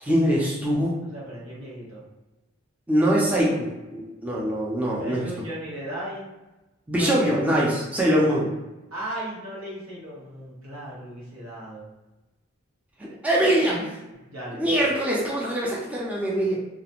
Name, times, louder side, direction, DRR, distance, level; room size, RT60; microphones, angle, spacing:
voice 1, 0.0-1.0 2.9-5.3 6.9-8.5 13.0-14.0 14.6-16.5, right 1 dB, 5° right, -5 dB, 0.4 m, -23 dB
voice 2, 1.0-2.0 4.9-6.3 7.0-7.4 8.9-11.9 14.3-14.8, right 1 dB, 85° right, -6 dB, 1.0 m, -36 dB
2.3 x 2.1 x 2.9 m, 1.1 s
head